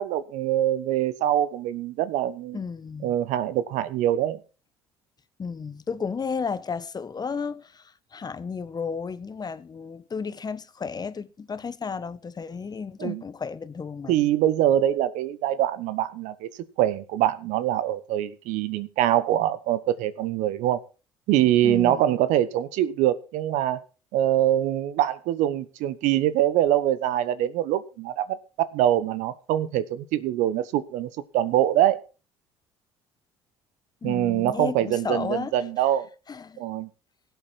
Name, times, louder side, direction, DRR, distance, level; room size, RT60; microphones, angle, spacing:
voice 1, 0.0-2.6 3.0-4.4 13.0-13.2 14.1-16.5 16.8-20.8 21.3-23.8 24.1-32.0 34.0-36.1 36.6-36.9, right 12 dB, 75° right, 1.1 m, -24 dB
voice 2, 2.5-3.1 5.4-14.2 21.6-22.2 34.0-35.5 36.3-36.6, left 5 dB, 30° left, 1.1 m, -33 dB
17.0 x 8.2 x 4.2 m
hypercardioid pair, 70°, 13 cm